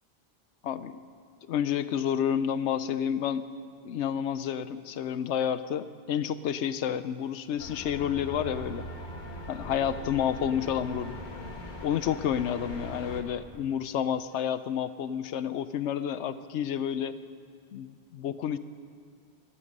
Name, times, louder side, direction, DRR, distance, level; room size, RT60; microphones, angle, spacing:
voice 1, 0.6-1.0 1.5-3.5 3.8-8.9 9.5-11.2 11.8-17.1 17.7-18.6, left 9 dB, 80° left, 13 dB, 1.0 m, -30 dB
sound 1, 7.6-13.2, left 1 dB, 45° left, 1.5 m, -40 dB
19.0 x 13.0 x 5.4 m, 2.3 s
omnidirectional pair, 1.2 m